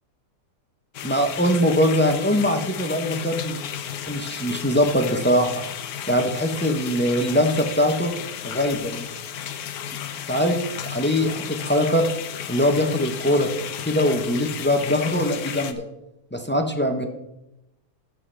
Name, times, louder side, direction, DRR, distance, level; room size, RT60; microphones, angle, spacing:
sound 1, 0.9-15.7, left 9 dB, 80° left, 1.2 m, -33 dB
voice 1, 1.0-3.6 4.1-5.6 6.1-8.1 8.4-9.1 10.3-12.0 12.5-13.5 13.8-15.8 16.3-17.1, equal, 10° left, 5 dB, 0.5 m, -22 dB
14.0 x 7.4 x 3.3 m, 0.89 s
omnidirectional pair, 1.6 m